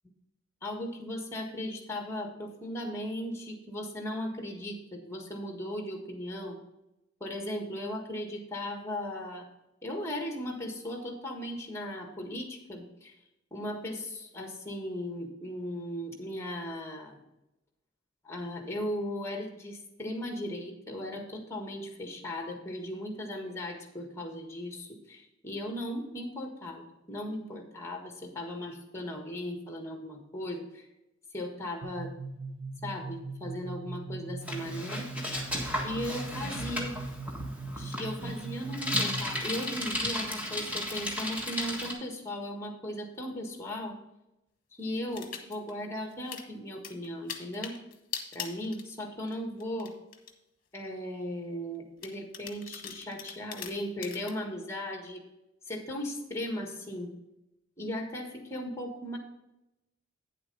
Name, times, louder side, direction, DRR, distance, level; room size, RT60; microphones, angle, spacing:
voice 1, 0.6-6.6 7.2-9.5 9.8-13.1 13.5-17.2 18.2-30.9 31.3-32.1 32.8-35.1 35.8-36.9 37.7-44.0 44.7-47.7 48.3-49.9 50.7-55.2 55.6-57.1 57.8-59.2, left 1 dB, 15° left, 3 dB, 1.5 m, -37 dB
sound 1, 31.8-39.4, right 3 dB, 75° right, 0.9 m, -40 dB
Bicycle, 34.4-41.9, left 1 dB, 5° right, 1.6 m, -34 dB
sound 2, 45.1-45.7 46.1-46.5 46.8-49.3 49.6-50.3 50.9-51.0 52.0-54.3, left 8 dB, 45° left, 1.2 m, -41 dB
9.5 x 7.7 x 3.9 m, 0.91 s
head